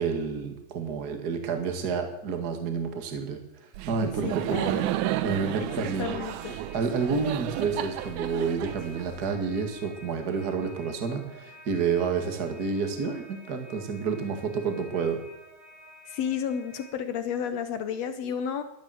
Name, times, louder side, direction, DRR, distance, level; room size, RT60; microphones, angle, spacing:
voice 1, 0.0-3.4 3.9-4.7 5.2-6.2 6.7-15.2, right 5 dB, 35° right, 6 dB, 1.9 m, -29 dB
Laughter, 3.7-9.6, right 13 dB, 75° right, 2.0 m, -32 dB
voice 2, 4.2-4.9 6.0-6.6 16.1-18.6, left 8 dB, 70° left, 10 dB, 1.6 m, -32 dB
sound 1, 5.7-16.9, equal, 60° right, 6.7 m, -51 dB
12.5 x 12.0 x 7.8 m, 0.93 s
omnidirectional pair, 4.0 m